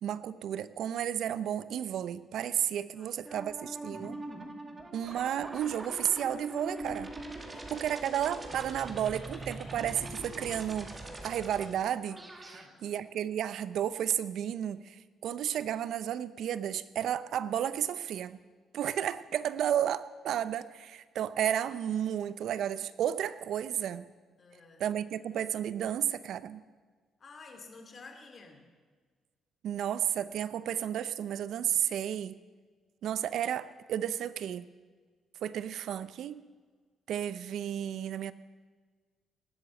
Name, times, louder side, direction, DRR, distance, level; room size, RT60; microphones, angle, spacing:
voice 1, 0.0-4.2 4.9-7.1 7.7-11.0 11.2-18.4 18.7-24.1 24.8-26.6 29.6-32.4 33.0-34.7 35.4-36.5 37.1-38.3, right 10 dB, 75° right, 15 dB, 0.6 m, -32 dB
voice 2, 2.9-3.5 7.4-8.3 12.4-12.9 24.4-24.8 27.2-28.7, left 4 dB, 40° left, 3 dB, 2.9 m, -53 dB
sound 1, 3.3-12.6, right 1 dB, 20° right, 2.2 m, -43 dB
19.0 x 8.2 x 7.7 m, 1.5 s
cardioid pair, 90°, 0 cm